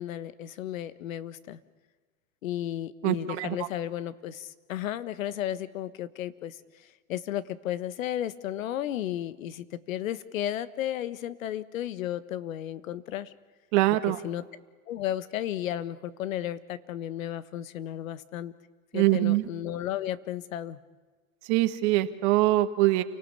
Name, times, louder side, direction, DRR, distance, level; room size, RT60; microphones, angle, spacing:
voice 1, 0.0-1.6 2.4-13.3 14.2-14.4 14.9-18.5 18.9-20.8, left 12 dB, 80° left, 15 dB, 1.5 m, -34 dB
voice 2, 3.0-3.6 13.7-14.2 18.9-19.4 21.5-23.0, right 17 dB, 55° right, 9 dB, 1.8 m, -23 dB
29.0 x 19.0 x 8.3 m, 1.4 s
hypercardioid pair, 120°, 41 cm